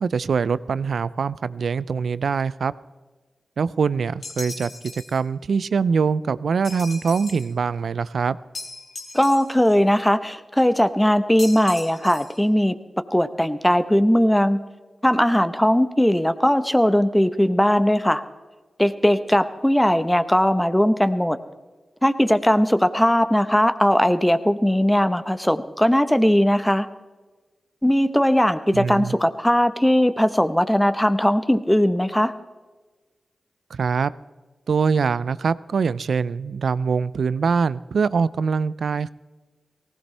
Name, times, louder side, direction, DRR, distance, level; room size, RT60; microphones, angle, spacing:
voice 1, 0.0-2.7 3.6-8.4 28.7-29.2 33.7-34.1 34.7-39.1, right 5 dB, 80° right, 18 dB, 0.4 m, -23 dB
sound 1, 4.2-5.2 6.6-7.5 8.5-9.7 11.4-12.4, left 3 dB, 75° left, 2.0 m, -38 dB
voice 2, 9.1-12.7 13.1-14.6 15.0-18.2 18.8-21.4 22.0-26.9 27.8-32.3, equal, 10° left, 11 dB, 1.0 m, -19 dB
19.0 x 16.0 x 3.3 m, 1.3 s
cardioid pair, 45°, 0 cm